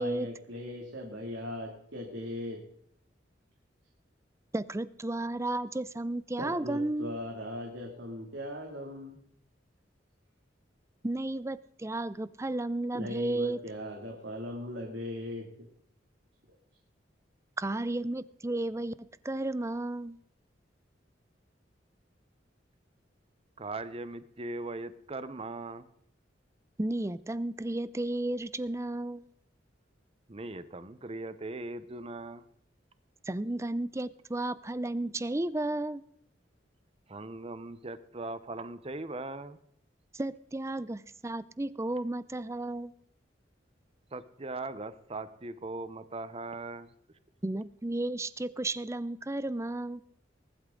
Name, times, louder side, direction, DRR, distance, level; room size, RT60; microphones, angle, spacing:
voice 1, 0.0-2.6 6.4-9.2 12.9-15.7, left 1 dB, 70° right, 0 dB, 2.6 m, -39 dB
voice 2, 4.5-7.2 11.0-13.6 17.6-20.2 26.8-29.3 33.3-36.0 40.1-42.9 47.4-50.0, right 2 dB, 15° right, 17 dB, 0.5 m, -33 dB
voice 3, 23.6-25.9 30.3-32.4 37.1-39.6 44.1-46.9, right 2 dB, 30° right, 13 dB, 0.8 m, -39 dB
20.5 x 12.0 x 3.8 m, 0.69 s
head